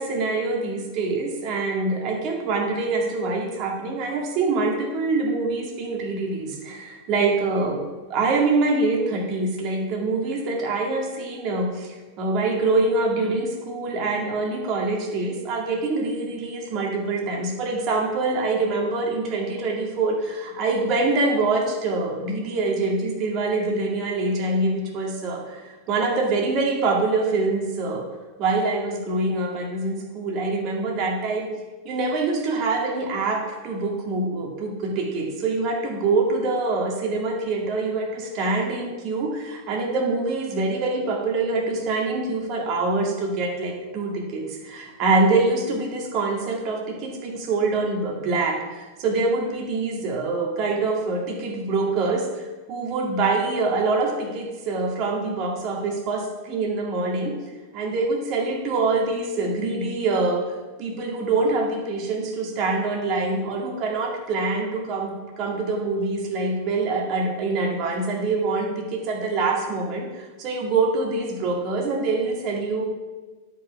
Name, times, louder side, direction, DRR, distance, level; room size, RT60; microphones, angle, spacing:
voice 1, 0.0-28.1 28.4-31.5 31.8-57.4 57.7-60.5 60.8-72.9, right 3 dB, 45° right, 0 dB, 2.0 m, -25 dB
11.0 x 5.6 x 5.9 m, 1.3 s
figure-of-eight pair, 90°, 0 cm